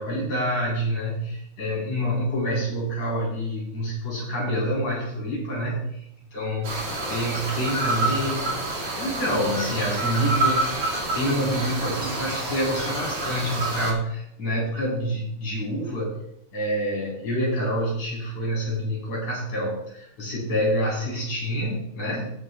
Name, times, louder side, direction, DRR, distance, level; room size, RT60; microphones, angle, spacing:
voice 1, 0.0-6.0 6.3-6.8 7.1-8.6 8.9-16.2 16.5-22.3, equal, 65° left, -4 dB, 6.1 m, -27 dB
sound 1, 6.6-13.9, right 2 dB, 35° right, 2.8 m, -28 dB
19.0 x 7.6 x 2.4 m, 0.74 s
omnidirectional pair, 3.5 m